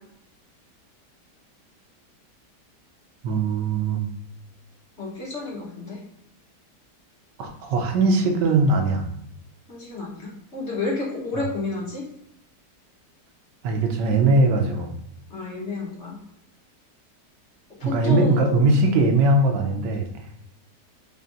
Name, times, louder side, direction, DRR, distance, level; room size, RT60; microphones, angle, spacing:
voice 1, 3.2-4.1 7.4-9.1 13.6-14.9 17.8-20.1, right 2 dB, 90° right, 4 dB, 1.4 m, -20 dB
voice 2, 5.0-6.0 9.7-12.0 15.3-16.2 17.8-18.4, left 3 dB, 45° left, -3 dB, 1.2 m, -30 dB
4.3 x 3.3 x 2.5 m, 0.77 s
omnidirectional pair, 1.9 m